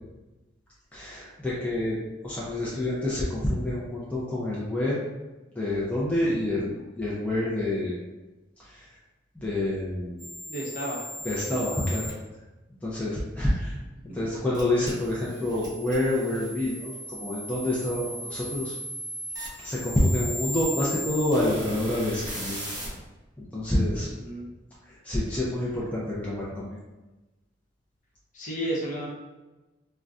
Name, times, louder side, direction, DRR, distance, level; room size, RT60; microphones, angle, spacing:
voice 1, 0.9-5.0 5.6-7.9 8.6-8.9 9.4-10.3 11.2-12.1 12.8-13.7 14.1-18.7 19.6-22.6 23.4-24.1 24.8-26.7, left 1 dB, 10° left, -7 dB, 0.4 m, -28 dB
sound 1, 10.2-12.1 14.5-22.9, equal, 20° right, 0.8 m, -37 dB
voice 2, 10.5-11.1 13.4-13.5 24.1-24.5 28.3-29.1, right 1 dB, 40° left, -4 dB, 0.7 m, -32 dB
3.8 x 2.1 x 2.4 m, 1.1 s
head